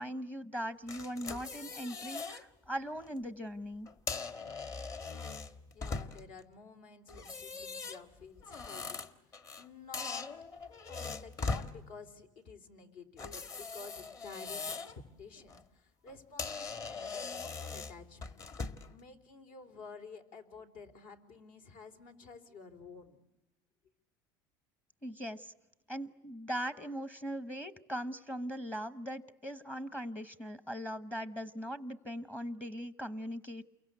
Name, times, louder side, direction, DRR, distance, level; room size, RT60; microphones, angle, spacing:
voice 1, 0.0-3.9 25.0-25.5 25.9-33.6, equal, 10° left, 12 dB, 1.0 m, -40 dB
sound 1, 0.9-2.4 2.9-3.1 3.9-6.4 7.1-9.7 9.9-11.7 13.2-15.0 15.4-15.6 16.1-16.2 16.4-18.9, left 4 dB, 30° left, 1.5 m, -40 dB
voice 2, 5.7-10.3 10.9-18.4 18.9-23.2, left 4 dB, 65° left, 8 dB, 3.6 m, -51 dB
29.0 x 23.5 x 8.1 m, 0.97 s
cardioid pair, 140°, 11 cm